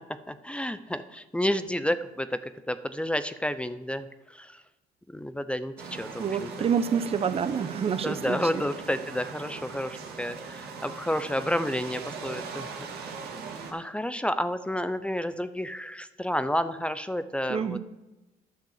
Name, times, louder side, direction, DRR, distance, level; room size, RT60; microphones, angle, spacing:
voice 1, 0.3-4.6 5.1-6.7 8.0-12.7 13.7-17.8, equal, 5° left, 12 dB, 0.5 m, -30 dB
sound 1, 5.8-13.7, right 5 dB, 70° right, 2.0 m, -40 dB
voice 2, 6.2-8.4 17.5-17.8, right 7 dB, 35° right, 12 dB, 0.8 m, -27 dB
10.5 x 5.7 x 7.2 m, 1.1 s
cardioid pair, 110°, 17 cm